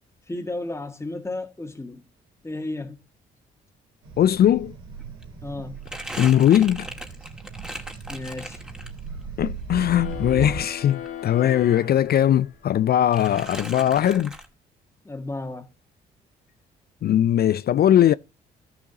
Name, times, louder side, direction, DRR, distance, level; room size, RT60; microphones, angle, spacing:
voice 1, 0.3-2.0 2.4-3.0 5.4-5.8 8.1-8.6 15.0-15.6, left 2 dB, 15° left, 1.7 m, -33 dB
sound 1, 4.0-10.6, right 5 dB, 85° right, 3.5 m, -37 dB
voice 2, 4.2-4.7 6.2-6.9 9.4-14.3 17.0-18.1, left 11 dB, 50° left, 0.4 m, -20 dB
Crumpling crinkling, 4.8-9.3 9.6-11.8 12.0-12.8 13.1-14.5, equal, 5° right, 2.0 m, -39 dB
sound 2, 9.8-12.8, left 9 dB, 75° left, 2.1 m, -38 dB
13.5 x 6.9 x 2.8 m
hypercardioid pair, 55°, 21 cm